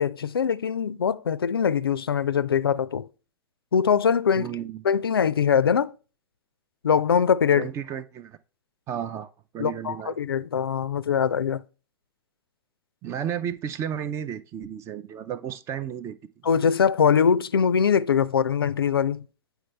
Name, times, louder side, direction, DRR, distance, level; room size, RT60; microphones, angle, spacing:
voice 1, 0.0-3.1 3.7-4.5 4.8-5.9 6.8-7.7 9.6-11.6 16.4-19.2, left 7 dB, 75° left, 0.4 m, -22 dB
voice 2, 4.4-4.8 7.6-8.4 8.9-10.2 13.0-16.2, right 9 dB, 25° right, 0.4 m, -33 dB
8.7 x 4.5 x 3.3 m
figure-of-eight pair, 100°, 13 cm